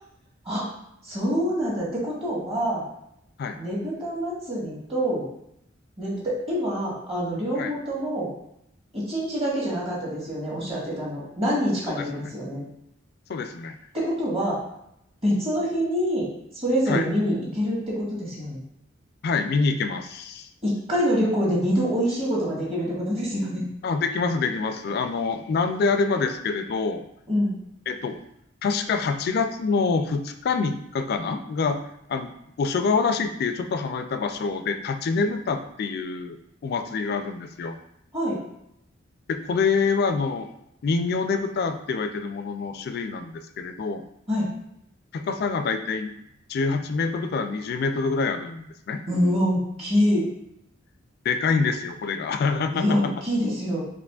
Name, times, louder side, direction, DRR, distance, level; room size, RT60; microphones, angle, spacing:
voice 1, 1.0-2.8 3.6-5.2 6.0-8.3 8.9-12.6 13.9-14.6 15.2-16.3 16.5-18.6 20.6-23.6 27.3-27.5 38.1-38.4 44.3-44.5 49.1-50.3 52.7-53.8, equal, 30° right, -6 dB, 1.3 m, -25 dB
voice 2, 11.9-12.3 13.3-13.8 16.9-17.1 19.2-20.5 23.8-27.0 27.9-28.2 28.6-31.8 32.1-32.3 32.6-36.4 36.6-37.7 39.3-40.5 40.8-44.0 45.1-46.1 46.5-49.0 51.3-53.1, left 4 dB, 55° left, 7 dB, 0.3 m, -26 dB
4.8 x 2.9 x 2.3 m, 0.77 s
head